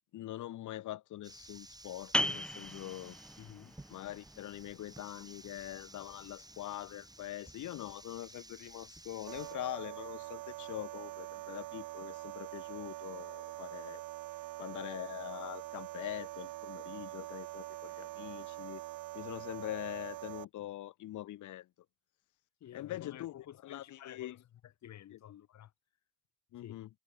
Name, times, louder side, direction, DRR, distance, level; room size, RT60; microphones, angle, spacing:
voice 1, 0.1-3.2 3.9-14.0 14.6-18.8 19.1-21.7 22.7-23.3 23.6-24.3 26.5-26.9, left 14 dB, 80° left, 1.9 m, -43 dB
sound 1, 1.2-9.5, right 2 dB, 15° right, 4.8 m, -55 dB
sound 2, 2.1-7.5, left 1 dB, 5° left, 1.0 m, -40 dB
voice 2, 3.4-3.8 22.6-25.7 26.6-26.9, left 11 dB, 65° left, 1.7 m, -52 dB
sound 3, 9.3-20.4, right 17 dB, 90° right, 1.7 m, -44 dB
cardioid pair, 90°, 30 cm